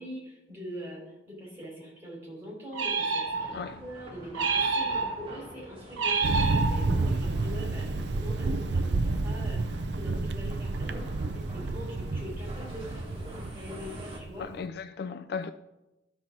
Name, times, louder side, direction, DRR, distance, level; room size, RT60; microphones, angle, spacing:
voice 1, 0.0-6.4 6.7-9.0 9.2-14.5, equal, 10° right, 3.8 m, -43 dB
sound 1, 2.7-3.8 4.3-5.4 6.0-7.2, right 4 dB, 90° right, 1.0 m, -28 dB
sound 2, 3.3-14.2, equal, 30° right, 1.6 m, -47 dB
Thunder, 6.2-14.5, right 3 dB, 60° right, 0.5 m, -30 dB
voice 2, 14.4-15.5, left 5 dB, 55° left, 0.3 m, -36 dB
12.0 x 4.4 x 6.0 m
head